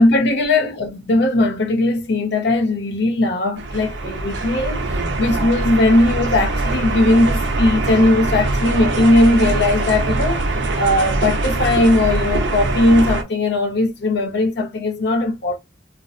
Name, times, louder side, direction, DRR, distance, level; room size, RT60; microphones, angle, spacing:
voice 1, 0.0-10.4 10.7-15.6, left 2 dB, 65° left, 0.6 m, -18 dB
sound 1, 3.6-13.2, right 2 dB, 85° right, 0.6 m, -22 dB
2.5 x 2.0 x 2.5 m
head